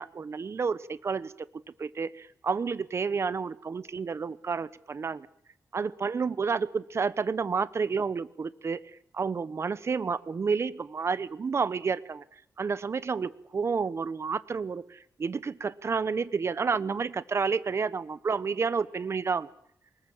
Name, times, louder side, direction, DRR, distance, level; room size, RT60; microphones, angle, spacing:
voice 1, 0.0-1.3 1.8-5.3 5.7-8.8 9.1-12.2 12.6-19.5, right 5 dB, 45° right, 16 dB, 0.9 m, -30 dB
24.0 x 21.0 x 7.2 m, 0.68 s
wide cardioid pair, 110°, 7 cm